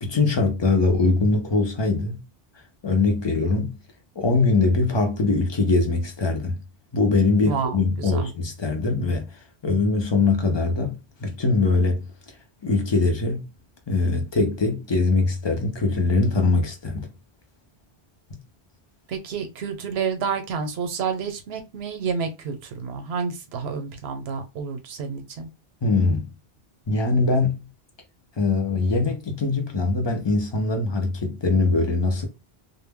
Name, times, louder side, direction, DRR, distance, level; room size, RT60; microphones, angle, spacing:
voice 1, 0.0-2.2 2.8-3.8 4.2-6.6 6.9-9.4 9.6-12.1 12.6-13.5 13.9-17.1 18.3-18.4 25.8-26.3 26.9-27.7 28.4-32.3, left 3 dB, 35° left, 0.5 m, -22 dB
voice 2, 19.1-25.5, right 6 dB, 80° right, 0.8 m, -29 dB
2.1 x 2.0 x 3.4 m
omnidirectional pair, 1.1 m